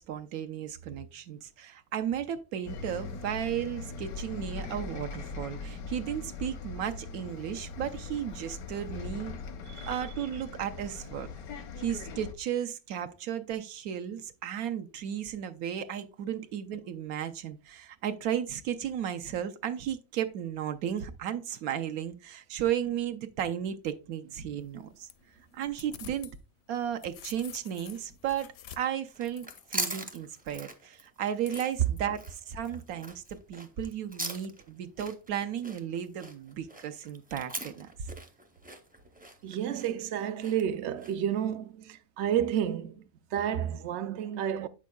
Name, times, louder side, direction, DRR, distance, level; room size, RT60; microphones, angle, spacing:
voice 1, 0.0-9.4 9.9-11.3 11.8-25.1 25.5-26.3 26.7-33.2 33.5-38.1, right 9 dB, 80° right, 1.1 m, -34 dB
Bus, 2.7-12.3, left 4 dB, 90° left, 1.3 m, -40 dB
voice 2, 9.7-10.0 24.6-24.7 39.4-43.0 43.3-44.7, right 9 dB, 65° right, 0.7 m, -31 dB
sound 1, 24.6-26.4 26.7-30.0 31.4-32.0, left 9 dB, 65° left, 0.6 m, -49 dB
sound 2, 29.1-41.3, right 2 dB, 15° right, 0.3 m, -41 dB
8.3 x 6.2 x 2.3 m
omnidirectional pair, 1.5 m